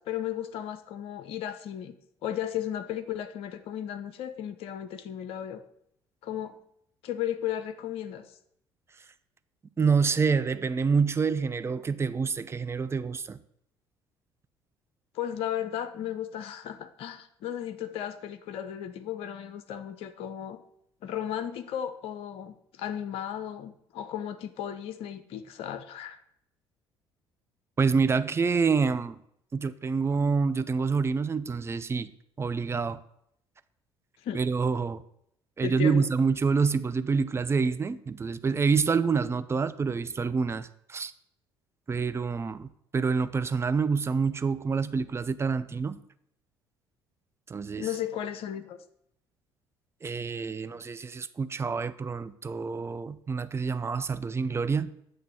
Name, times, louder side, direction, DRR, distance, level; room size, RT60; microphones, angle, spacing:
voice 1, 0.0-1.9 2.2-5.6 6.2-6.6 7.0-8.2 15.1-20.6 21.0-26.2 34.2-34.4 35.6-36.0 47.8-48.8, left 10 dB, 55° left, 0.5 m, -35 dB
voice 2, 9.8-13.4 27.8-29.2 29.5-32.1 32.4-33.0 34.3-35.0 35.6-41.1 41.9-46.0 47.5-47.9 50.0-54.9, right 5 dB, 20° right, 0.4 m, -27 dB
8.0 x 3.3 x 6.2 m
figure-of-eight pair, 50°, 12 cm